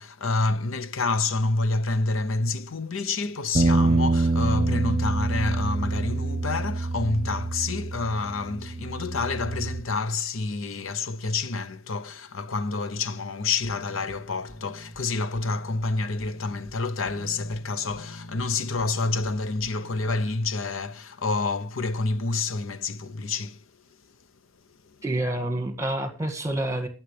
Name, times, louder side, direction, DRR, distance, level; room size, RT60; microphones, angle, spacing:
voice 1, 0.0-23.6 24.8-25.0, left 3 dB, 85° left, 0.8 m, -28 dB
sound 1, 3.5-9.8, right 2 dB, 40° right, 0.8 m, -26 dB
sound 2, 13.6-20.5, equal, 55° left, 2.8 m, -46 dB
voice 2, 25.0-26.9, right 1 dB, 15° right, 1.8 m, -28 dB
22.0 x 7.4 x 3.3 m
head